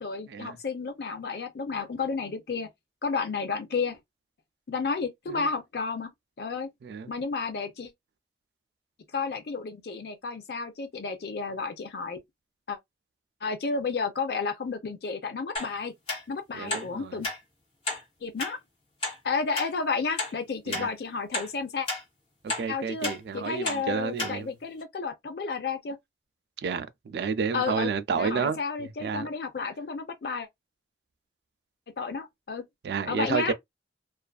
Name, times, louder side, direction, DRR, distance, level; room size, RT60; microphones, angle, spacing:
voice 1, 0.0-2.7 3.0-4.0 4.7-6.1 6.4-6.7 7.1-7.9 9.1-12.2 12.7-12.8 13.4-15.9 16.3-17.3 18.2-18.6 19.2-21.9 22.7-26.0 27.5-27.9 28.1-30.5 32.0-32.6 33.1-33.5, left 4 dB, 65° left, 0.5 m, -32 dB
sound 1, 15.6-15.7 16.1-16.2 16.7-16.9 17.2-17.4 17.9-18.0 18.4-18.5 19.0-19.2 19.6-19.7 20.2-20.3 20.7-20.9 21.3-21.5 21.9-22.0 22.5-22.7 23.0-23.2 23.7-23.8 24.2-24.3 24.8-24.9, left 2 dB, 35° left, 1.2 m, -31 dB
voice 2, 16.5-17.2 20.7-20.9 22.6-24.5 26.6-28.6 29.0-29.3 32.8-33.5, right 6 dB, 70° right, 0.3 m, -30 dB
2.4 x 2.3 x 2.3 m
head